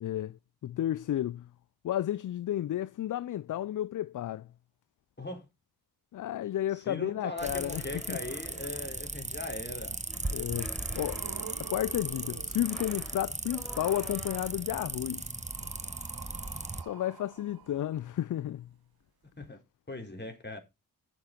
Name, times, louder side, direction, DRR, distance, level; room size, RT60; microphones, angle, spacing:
voice 1, 0.0-1.5 1.8-4.5 6.1-7.8 8.1-8.2 10.3-11.2 11.6-15.3 16.8-18.7, left 12 dB, 50° left, 0.5 m, -32 dB
voice 2, 6.7-10.0 19.4-19.6 19.9-20.6, left 2 dB, 25° left, 4.2 m, -39 dB
sound 1, 7.2-9.1 10.1-11.9 12.5-14.8, equal, ahead, 4.2 m, -49 dB
sound 2, 7.4-16.8, right 2 dB, 15° right, 1.4 m, -37 dB
sound 3, 9.9-10.0 10.5-13.3 14.5-18.4 19.4-19.5, right 8 dB, 65° right, 1.5 m, -49 dB
10.5 x 7.2 x 4.4 m
supercardioid pair, 40°, 40 cm